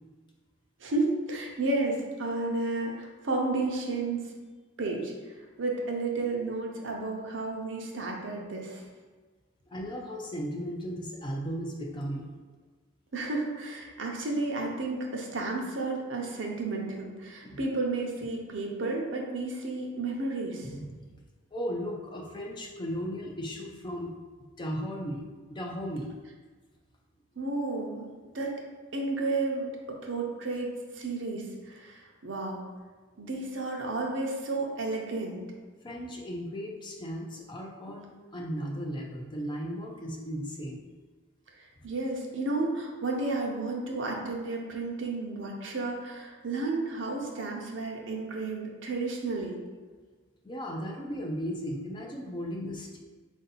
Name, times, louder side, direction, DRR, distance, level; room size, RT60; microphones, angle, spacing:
voice 1, 0.8-4.2 4.8-5.1 5.6-8.8 13.1-20.7 27.4-28.0 28.3-28.5 28.9-29.7 30.0-32.6 33.2-35.4 41.6-49.6, right 3 dB, 60° right, 0 dB, 0.7 m, -32 dB
voice 2, 9.7-12.3 17.4-17.6 20.6-20.9 21.5-25.2 25.5-26.1 35.8-40.9 50.4-53.0, equal, 20° left, 0 dB, 0.4 m, -36 dB
4.4 x 2.7 x 4.0 m, 1.4 s
head